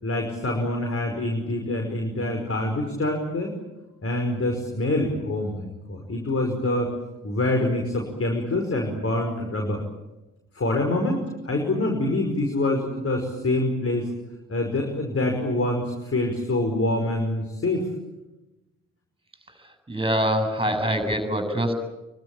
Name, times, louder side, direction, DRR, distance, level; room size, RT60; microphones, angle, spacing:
voice 1, 0.0-3.5 4.0-6.9 7.2-9.8 10.6-14.1 14.5-17.9, left 1 dB, 35° left, 2 dB, 5.6 m, -25 dB
voice 2, 19.9-21.7, equal, 15° right, 6 dB, 8.0 m, -24 dB
24.5 x 24.0 x 8.8 m, 1.0 s
figure-of-eight pair, 40°, 38 cm